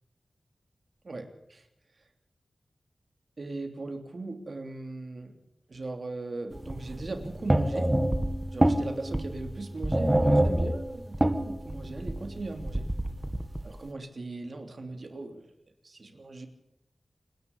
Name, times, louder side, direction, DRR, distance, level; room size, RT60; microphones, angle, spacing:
voice 1, 1.0-1.7 3.4-5.4 5.7-7.9 8.5-12.9 13.6-15.5 15.8-16.5, right 2 dB, 55° right, 5 dB, 3.1 m, -39 dB
sound 1, 6.5-13.7, right 1 dB, 15° right, 1.9 m, -26 dB
28.5 x 11.0 x 8.6 m, 0.83 s
wide cardioid pair, 100°, 0 cm